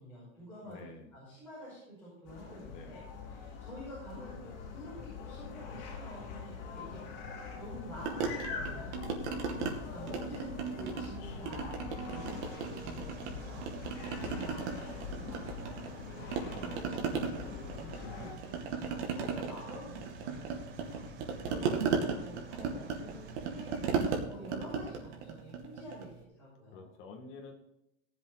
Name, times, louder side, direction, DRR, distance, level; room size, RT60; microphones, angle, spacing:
voice 1, 0.0-7.1 7.5-26.9, equal, 5° left, -11 dB, 5.9 m, -49 dB
voice 2, 0.6-1.1 2.7-3.1 21.4-22.0 26.7-27.5, left 4 dB, 35° left, 2 dB, 2.1 m, -49 dB
sound 1, 2.2-18.3, left 5 dB, 55° left, 3.3 m, -43 dB
sound 2, 8.1-9.7 10.1-11.1 11.5-13.3 13.6-16.0 16.3-26.1, right 5 dB, 75° right, 2.5 m, -36 dB
sound 3, 12.1-24.2, right 2 dB, 50° right, 1.8 m, -50 dB
18.0 x 7.5 x 4.2 m, 0.83 s
supercardioid pair, 175°, 35 cm